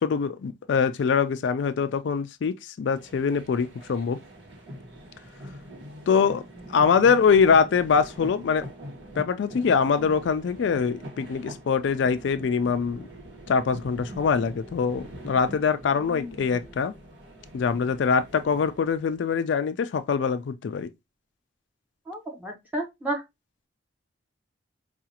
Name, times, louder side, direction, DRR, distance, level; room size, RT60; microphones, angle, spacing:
voice 1, 0.0-4.2 6.1-6.4 6.7-8.7 9.2-13.1 13.5-16.9 17.5-20.9, left 6 dB, 70° left, 0.3 m, -23 dB
sound 1, 2.9-19.2, equal, 60° right, 1.5 m, -43 dB
voice 2, 16.0-16.6 22.1-23.2, right 1 dB, 10° right, 1.0 m, -33 dB
4.7 x 2.4 x 2.8 m
head